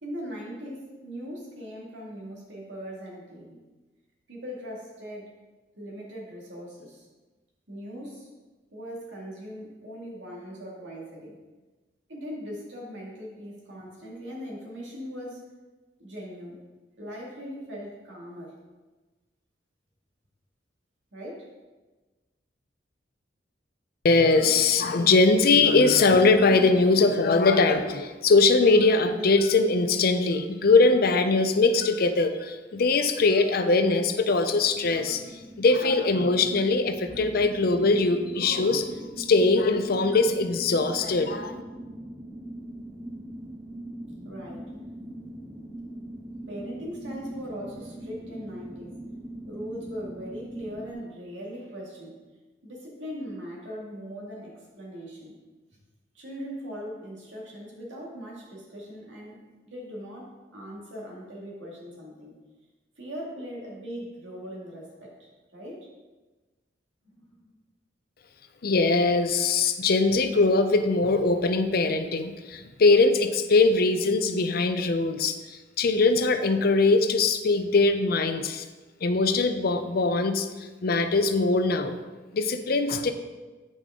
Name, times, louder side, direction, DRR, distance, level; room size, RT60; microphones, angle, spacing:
voice 1, 0.0-3.6 4.3-5.3 5.7-7.1 7.7-8.3 8.7-11.4 12.1-15.4 16.0-16.6 17.0-18.6 21.1-21.5 44.2-44.7 46.5-49.0 49.5-52.2 52.6-55.4 55.7-55.8 56.1-59.4 59.6-62.3 63.0-65.9 67.0-67.5, equal, 75° right, -3 dB, 2.1 m, -40 dB
voice 2, 24.0-35.2 35.6-38.9 39.2-41.6 68.6-78.6 79.0-80.5 80.8-82.0 82.3-83.1, left 3 dB, 55° left, 8 dB, 0.5 m, -21 dB
sound 1, 34.2-50.9, right 1 dB, 5° right, 1.0 m, -41 dB
9.3 x 5.2 x 3.7 m, 1.3 s
head